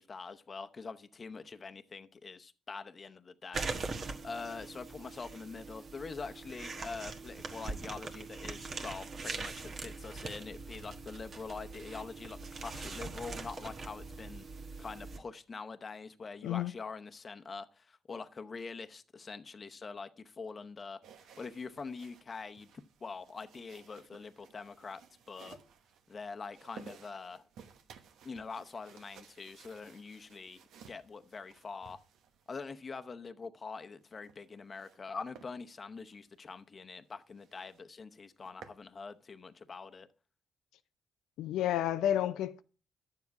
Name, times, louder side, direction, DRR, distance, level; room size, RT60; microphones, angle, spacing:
voice 1, 0.0-3.9 4.2-14.4 14.8-22.7 23.0-25.6 26.1-27.4 28.2-30.6 30.9-32.0 32.5-40.1, left 4 dB, 35° left, 0.8 m, -44 dB
sound 1, 3.5-15.2, right 3 dB, 50° right, 1.4 m, -42 dB
sound 2, 21.0-32.7 34.0-35.0 35.3-35.5 36.0-36.2 36.6-36.7 37.0-37.1 37.4-37.8 38.2-38.8, right 7 dB, 80° right, 1.1 m, -57 dB
voice 2, 41.4-42.6, left 11 dB, 90° left, 0.4 m, -30 dB
10.5 x 7.3 x 4.7 m
cardioid pair, 90°, 0 cm